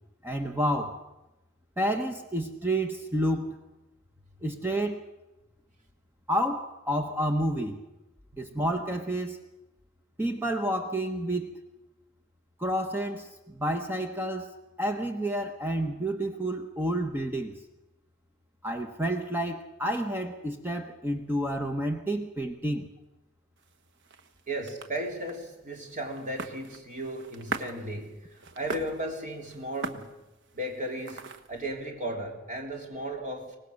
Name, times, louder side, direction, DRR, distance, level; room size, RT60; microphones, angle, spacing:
voice 1, 0.2-1.0 1.8-3.5 4.4-5.0 6.3-7.8 8.4-9.4 10.2-11.6 12.6-14.5 14.8-17.6 18.6-22.9, right 1 dB, 10° right, 5 dB, 1.1 m, -30 dB
sound 1, 23.6-31.7, right 4 dB, 55° right, 1.2 m, -42 dB
voice 2, 24.5-28.3 28.5-30.1 30.5-33.6, right 1 dB, 35° right, 2 dB, 3.4 m, -35 dB
24.0 x 19.5 x 6.5 m, 1.0 s
head